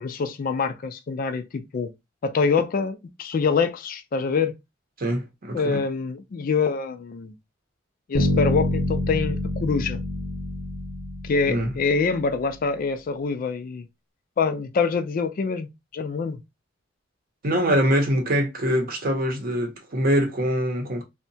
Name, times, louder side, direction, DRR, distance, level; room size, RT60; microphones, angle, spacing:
voice 1, 0.0-1.9 2.2-4.6 5.5-7.3 8.1-10.0 11.2-13.9 14.4-16.4, left 5 dB, 45° left, 0.3 m, -25 dB
voice 2, 5.0-5.8 11.5-11.7 17.4-21.0, equal, 50° right, 0.7 m, -24 dB
Bass guitar, 8.1-12.1, left 1 dB, 85° left, 0.8 m, -26 dB
2.7 x 2.1 x 2.6 m
head